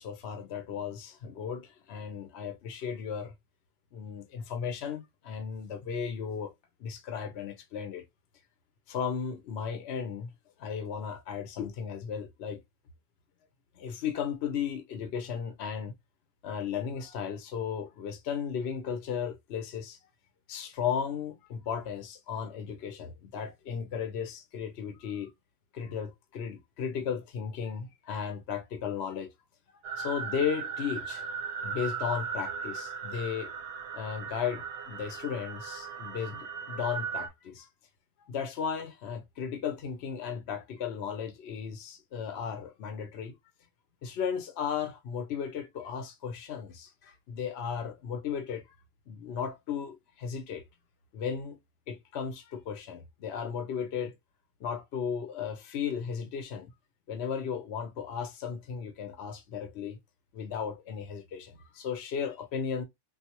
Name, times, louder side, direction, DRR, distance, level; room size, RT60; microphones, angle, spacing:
voice 1, 0.0-3.3 3.9-6.5 6.8-8.0 8.9-10.3 10.6-12.6 13.8-15.9 16.4-20.0 20.5-25.3 25.7-29.3 30.0-31.3 31.6-33.5 33.9-37.7 38.3-43.4 44.0-48.7 49.1-50.6 51.1-51.6 51.9-54.1 54.6-56.7 57.1-60.0 60.3-62.8, left 7 dB, 60° left, 0.8 m, -35 dB
sound 1, 29.8-37.3, right 6 dB, 90° right, 1.2 m, -37 dB
3.4 x 2.6 x 2.8 m
omnidirectional pair, 1.5 m